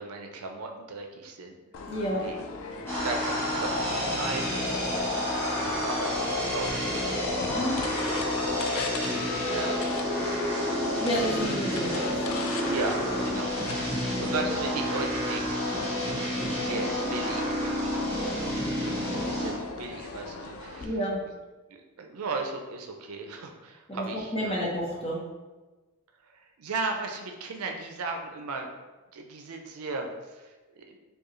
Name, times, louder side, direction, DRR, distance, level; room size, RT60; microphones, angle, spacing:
voice 1, 0.0-1.6 2.1-2.4 2.9-4.5 4.9-7.5 7.7-9.2 9.5-9.9 10.8-11.7 12.7-15.9 16.7-21.0 21.2-21.3 21.7-24.7 26.2-28.7 29.1-31.0, right 3 dB, 75° right, 3 dB, 0.5 m, -37 dB
sound 1, 1.7-20.8, left 4 dB, 65° left, 0.4 m, -39 dB
voice 2, 1.9-2.2 7.5-7.8 11.0-12.2 20.8-21.2 23.9-24.1 24.3-25.2, equal, 25° left, -4 dB, 0.9 m, -30 dB
sound 2, 2.9-19.5, left 1 dB, 10° left, 1.3 m, -29 dB
4.7 x 2.3 x 3.1 m, 1.2 s
head